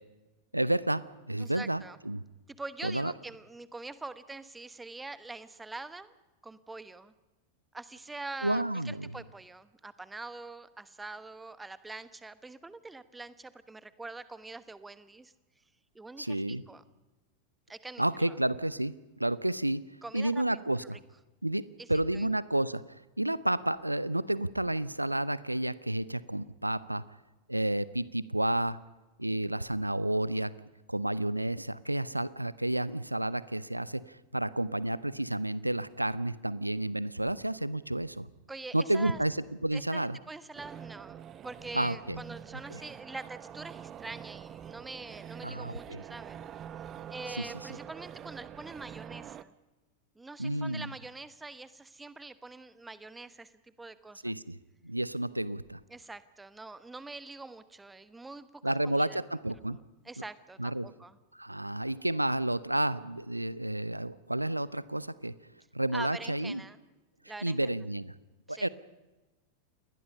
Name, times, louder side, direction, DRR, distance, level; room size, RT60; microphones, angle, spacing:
voice 1, 0.5-2.2 2.8-3.1 8.4-9.1 16.2-16.6 18.0-19.9 20.1-21.0 21.4-27.0 27.5-28.8 29.2-30.5 30.9-38.3 38.7-39.4 39.6-40.2 41.7-42.2 42.7-42.8 45.4-46.0 47.4-47.5 50.4-50.9 54.2-54.6 54.8-55.8 58.6-59.8 60.6-60.9 61.3-65.3 65.7-66.6 67.4-68.2 68.5-68.7, right 1 dB, 85° right, 18 dB, 0.7 m, -31 dB
voice 2, 1.4-2.0 2.5-6.1 6.4-7.1 7.7-15.3 15.9-16.8 17.7-18.0 20.0-20.4 21.8-21.9 22.1-22.3 38.5-39.2 39.7-41.2 41.4-46.4 47.1-49.5 50.1-54.2 55.9-59.2 60.0-61.2 65.9-66.8 67.2-67.6 68.5-68.7, right 3 dB, 10° right, 14 dB, 1.1 m, -44 dB
sound 1, 40.5-49.4, right 9 dB, 30° right, 0.8 m, -45 dB
28.5 x 20.5 x 5.6 m, 1.1 s
figure-of-eight pair, 90°, 0 cm